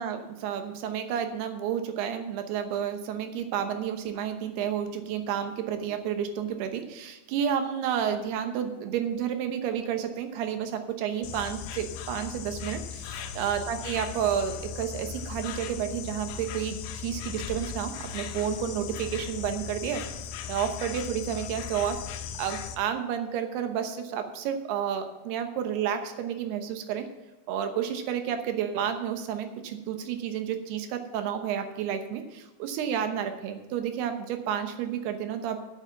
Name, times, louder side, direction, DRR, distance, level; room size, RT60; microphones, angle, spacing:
voice 1, 0.0-20.0 20.5-27.1 27.5-35.7, right 8 dB, 75° right, 7 dB, 2.8 m, -31 dB
Insect, 11.2-22.8, left 8 dB, 80° left, 3.0 m, -38 dB
8.5 x 8.4 x 7.2 m, 1.1 s
omnidirectional pair, 5.1 m